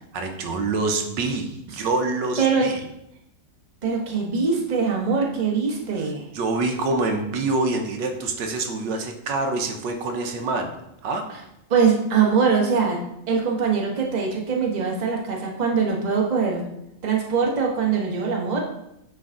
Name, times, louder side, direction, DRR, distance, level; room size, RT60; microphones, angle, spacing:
voice 1, 0.1-2.8 6.3-10.7 11.0-11.2, right 3 dB, 85° right, 5 dB, 1.5 m, -26 dB
voice 2, 2.4-2.7 3.8-6.2 11.7-13.0 13.3-16.7 17.0-18.7, right 5 dB, 30° right, -1 dB, 1.0 m, -22 dB
9.4 x 3.5 x 3.7 m, 0.81 s
omnidirectional pair, 1.9 m